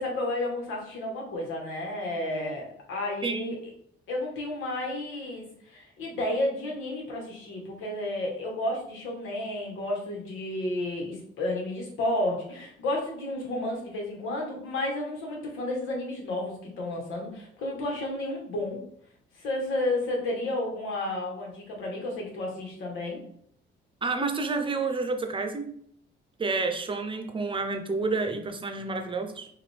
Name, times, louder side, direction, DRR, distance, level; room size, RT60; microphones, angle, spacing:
voice 1, 0.0-3.6 4.1-18.8 19.4-23.2, left 1 dB, 90° left, -1 dB, 1.4 m, -32 dB
voice 2, 3.2-3.5 24.0-25.6 26.4-29.5, right 3 dB, 25° right, 6 dB, 0.7 m, -29 dB
4.9 x 2.6 x 3.4 m, 0.66 s
cardioid pair, 90°, 20 cm